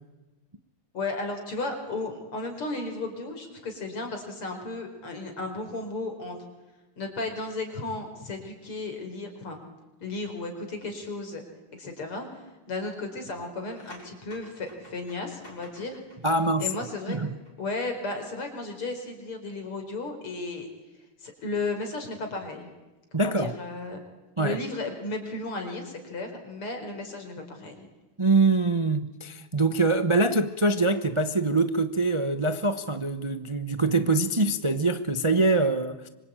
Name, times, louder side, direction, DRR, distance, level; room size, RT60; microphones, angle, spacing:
voice 1, 0.9-6.4 7.0-9.6 10.0-11.4 11.7-12.3 12.7-16.0 16.6-17.2 17.6-20.7 21.2-22.7 23.1-24.0 24.4-27.9, left 3 dB, 80° left, 5.5 m, -34 dB
sound 1, 13.7-17.6 17.8-18.0, left 1 dB, 45° left, 5.9 m, -51 dB
voice 2, 16.2-16.7 17.1-17.3 23.1-23.5 24.4-24.6 28.2-36.1, right 2 dB, 25° right, 0.6 m, -24 dB
26.0 x 25.0 x 9.0 m
omnidirectional pair, 2.4 m